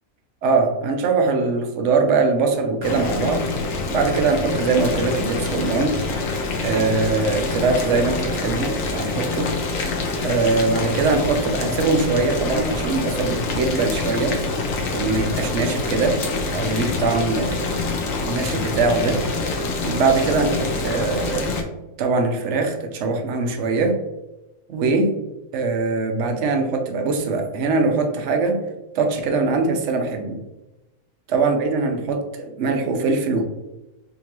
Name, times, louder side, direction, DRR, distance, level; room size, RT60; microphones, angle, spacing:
voice 1, 0.4-3.4 3.9-6.0 6.6-9.5 10.2-14.4 14.9-16.2 16.5-19.2 19.8-21.6 22.0-24.0 24.7-25.1 25.5-28.6 28.9-30.4 31.3-33.4, right 3 dB, 65° right, 4 dB, 0.8 m, -22 dB
Boiling, 2.8-21.6, left 3 dB, 65° left, 0.9 m, -26 dB
3.7 x 2.7 x 2.9 m, 0.98 s
omnidirectional pair, 1.6 m